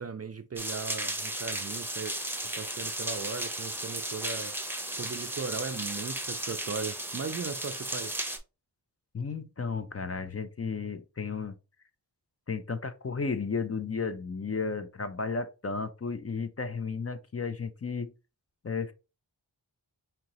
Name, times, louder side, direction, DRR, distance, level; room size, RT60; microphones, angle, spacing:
voice 1, 0.0-2.1 2.4-4.6 5.0-8.2, right 5 dB, 35° right, 0.4 m, -37 dB
sound 1, 0.6-8.4, right 1 dB, 5° right, 0.8 m, -35 dB
voice 2, 9.1-11.6 12.5-18.1 18.6-18.9, left 5 dB, 35° left, 0.6 m, -33 dB
5.1 x 2.9 x 2.9 m
wide cardioid pair, 80°, 43 cm